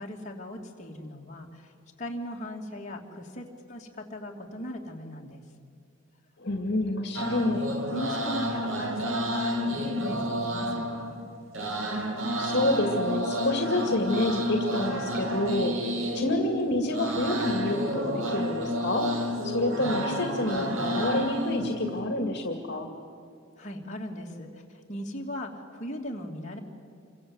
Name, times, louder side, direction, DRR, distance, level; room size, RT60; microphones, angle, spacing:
voice 1, 0.0-1.7 2.0-5.4 7.9-11.2 23.6-26.6, equal, 35° left, -1 dB, 2.9 m, -38 dB
voice 2, 6.4-7.7 12.4-15.7 16.1-19.1 19.4-22.9, left 1 dB, 55° left, 4 dB, 2.3 m, -28 dB
sound 1, 7.2-22.0, equal, 75° right, 3.1 m, -30 dB
28.0 x 24.5 x 8.1 m, 2.3 s
head